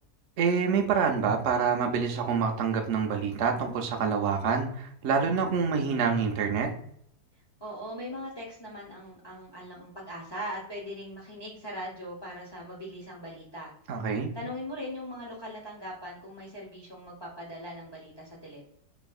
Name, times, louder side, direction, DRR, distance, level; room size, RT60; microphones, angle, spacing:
voice 1, 0.4-6.7 13.9-14.3, right 6 dB, 70° right, 3 dB, 0.7 m, -26 dB
voice 2, 7.6-13.7 14.3-18.6, equal, 30° left, -4 dB, 0.4 m, -40 dB
3.9 x 3.4 x 2.3 m, 0.69 s
omnidirectional pair, 1.8 m